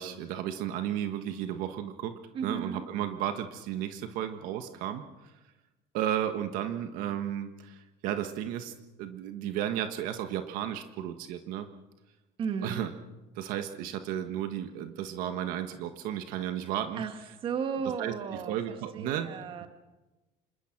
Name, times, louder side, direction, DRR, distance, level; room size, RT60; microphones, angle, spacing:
voice 1, 0.0-2.1 2.4-5.0 5.9-11.7 12.6-12.9 13.3-17.0 18.0-18.1 18.5-19.3 19.6-19.7, right 11 dB, 60° right, 7 dB, 1.5 m, -33 dB
voice 2, 2.3-2.9 12.4-12.8 17.0-17.1 17.4-19.7, right 6 dB, 35° right, 7 dB, 1.8 m, -34 dB
27.0 x 22.0 x 6.1 m, 1.1 s
cardioid pair, 170°, 16 cm